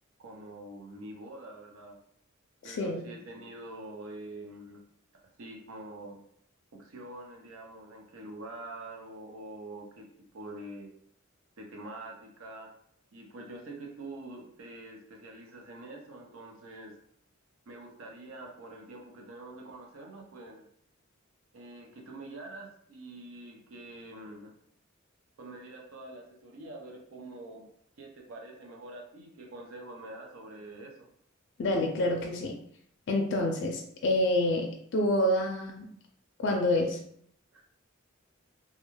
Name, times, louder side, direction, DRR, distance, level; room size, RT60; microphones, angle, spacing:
voice 1, 0.2-2.0 2.6-4.8 5.1-6.2 6.7-10.1 10.3-10.9 11.6-12.7 13.1-16.9 17.7-20.6 21.5-24.6 25.4-27.7 28.0-31.1 37.5-37.6, right 2 dB, 75° right, 1 dB, 0.6 m, -45 dB
voice 2, 2.6-3.0 31.6-32.6 33.1-35.9 36.4-37.0, left 1 dB, 60° left, 1 dB, 0.4 m, -27 dB
2.3 x 2.2 x 3.0 m, 0.67 s
head